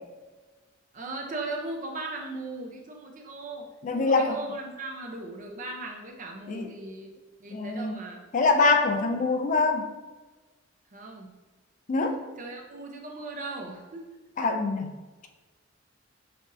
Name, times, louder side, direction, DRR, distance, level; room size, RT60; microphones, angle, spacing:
voice 1, 0.9-7.1 7.4-8.2 10.9-11.3 12.4-14.1, right 2 dB, 40° right, 2 dB, 0.6 m, -38 dB
voice 2, 3.8-4.4 6.5-6.7 7.5-8.0 8.3-9.9 11.9-12.2 14.4-14.9, left 3 dB, 40° left, 5 dB, 0.3 m, -24 dB
5.6 x 2.5 x 2.6 m, 1.2 s
head